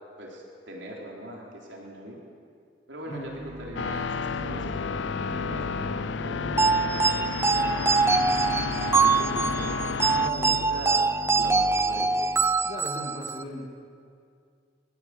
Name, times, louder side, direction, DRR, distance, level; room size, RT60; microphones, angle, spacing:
voice 1, 0.2-2.2 2.9-3.3 3.6-7.8 8.4-9.7 10.4-11.1 11.3-12.2, right 1 dB, 70° right, -2 dB, 3.6 m, -40 dB
sound 1, 3.0-12.7, equal, 40° right, 1.6 m, -40 dB
sound 2, 3.8-10.3, left 5 dB, 70° left, 0.5 m, -31 dB
voice 2, 3.9-4.2 10.1-10.6 12.6-13.7, equal, 35° left, -1 dB, 2.8 m, -38 dB
sound 3, 6.6-13.4, right 4 dB, 15° right, 0.5 m, -24 dB
22.5 x 15.0 x 8.2 m, 2.3 s
head